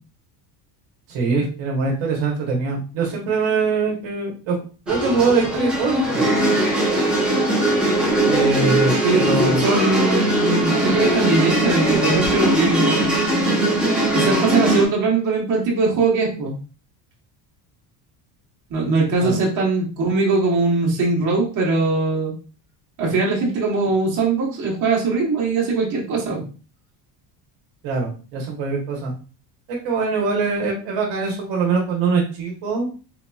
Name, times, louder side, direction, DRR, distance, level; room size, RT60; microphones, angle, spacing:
voice 1, 1.1-4.5 4.9-6.3 8.3-9.6 19.2-19.4 27.8-29.1 29.7-32.9, right 4 dB, 65° right, -1 dB, 1.1 m, -23 dB
sound 1, 4.9-14.8, right 1 dB, ahead, 0.6 m, -20 dB
voice 2, 9.0-13.1 14.1-16.5 18.7-22.3 23.0-26.5, right 3 dB, 40° right, -3 dB, 1.2 m, -21 dB
3.8 x 2.8 x 2.3 m, 0.36 s
cardioid pair, 155°, 48 cm